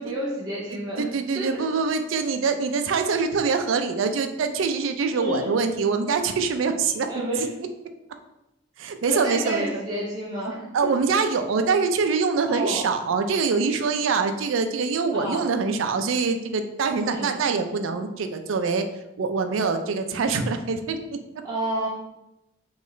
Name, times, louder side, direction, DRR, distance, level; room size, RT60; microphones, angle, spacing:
voice 1, 0.0-1.0 1.3-1.6 5.1-5.5 7.1-7.4 9.0-10.9 12.5-12.8 15.1-15.4 17.0-17.3 21.4-21.9, right 1 dB, 20° right, -7 dB, 0.6 m, -29 dB
voice 2, 0.7-7.1 8.8-9.8 10.7-18.8 19.2-21.0, right 5 dB, 85° right, 7 dB, 0.4 m, -24 dB
3.1 x 3.1 x 3.8 m, 0.91 s
head